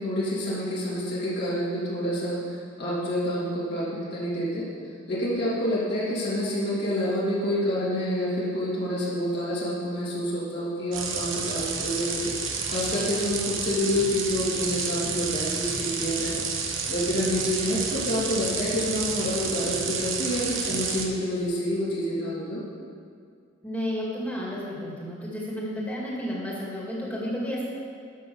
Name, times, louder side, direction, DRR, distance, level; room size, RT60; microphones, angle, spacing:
voice 1, 0.0-2.4 2.8-4.7 5.1-22.6, equal, 55° left, -8 dB, 2.8 m, -28 dB
sound 1, 10.9-21.0, right 5 dB, 85° right, 1.3 m, -30 dB
voice 2, 23.6-27.7, equal, 10° left, -5 dB, 2.2 m, -32 dB
11.0 x 6.1 x 7.1 m, 2.2 s
head